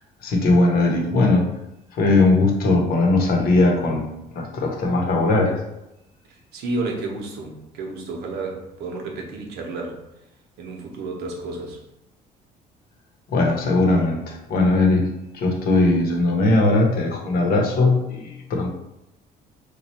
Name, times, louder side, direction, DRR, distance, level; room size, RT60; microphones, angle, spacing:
voice 1, 0.2-1.5 2.0-4.1 4.3-5.6 13.3-15.0 15.3-18.7, left 2 dB, 65° left, 1 dB, 0.9 m, -19 dB
voice 2, 6.3-10.0 10.6-11.8, right 2 dB, 80° right, 1 dB, 0.9 m, -31 dB
3.1 x 2.3 x 4.2 m, 0.89 s
cardioid pair, 110°, 17 cm